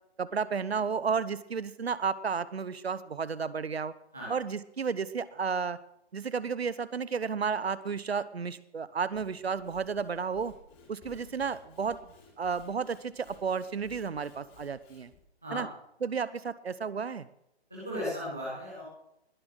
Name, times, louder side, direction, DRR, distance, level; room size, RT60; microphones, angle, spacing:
voice 1, 0.2-3.9 4.3-5.8 6.1-10.5 10.9-15.1 15.5-15.7 16.0-17.3, right 6 dB, 65° right, 17 dB, 0.9 m, -32 dB
Sawing / Wood, 9.0-15.2, left 4 dB, 20° left, 3.6 m, -57 dB
voice 2, 17.7-18.8, equal, 5° left, -6 dB, 0.4 m, -36 dB
20.5 x 7.1 x 6.4 m, 0.78 s
figure-of-eight pair, 140°, 33 cm